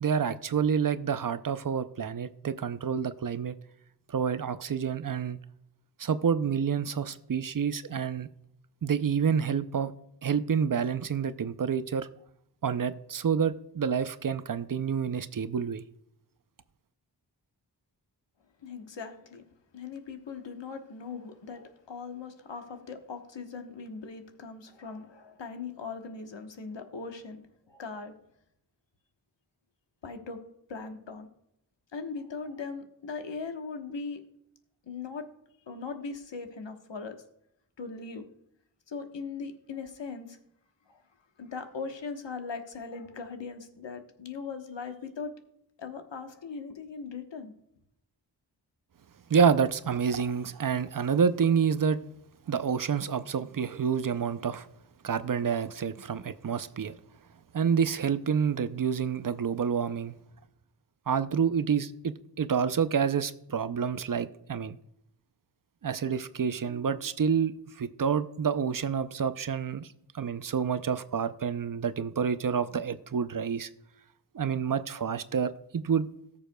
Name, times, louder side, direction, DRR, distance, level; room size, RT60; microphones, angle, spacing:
voice 1, 0.0-3.6 4.1-5.4 6.0-8.3 8.8-9.9 10.2-12.1 12.6-15.8 49.3-52.0 52.5-54.7 55.0-56.9 57.5-60.1 61.1-64.8 65.8-69.9 70.1-73.7 74.3-76.1, right 7 dB, 50° right, 0.5 m, -28 dB
voice 2, 18.6-19.4 19.7-27.4 27.7-28.1 30.0-30.4 30.7-31.3 31.9-34.2 34.9-35.3 35.7-37.2 37.8-38.2 38.9-40.4 40.9-41.0 41.4-45.3 45.8-47.5, left 4 dB, 85° left, 1.2 m, -39 dB
18.5 x 6.9 x 2.2 m
wide cardioid pair, 85°, 43 cm